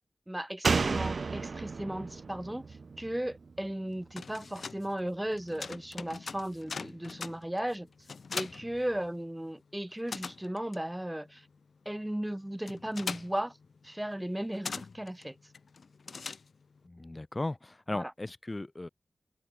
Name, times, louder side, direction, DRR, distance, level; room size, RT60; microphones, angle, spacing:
voice 1, 0.3-7.9 8.3-11.5 11.9-13.6 13.8-15.4 17.9-18.1, right 1 dB, 10° right, 7.3 m, -36 dB
Slam, 0.6-4.1 4.4-4.5, right 4 dB, 70° right, 0.8 m, -33 dB
sound 1, 3.9-9.5 9.8-16.9, left 5 dB, 80° left, 4.0 m, -43 dB
voice 2, 16.8-18.9, left 2 dB, 30° left, 2.8 m, -37 dB
cardioid pair, 55°, 0 cm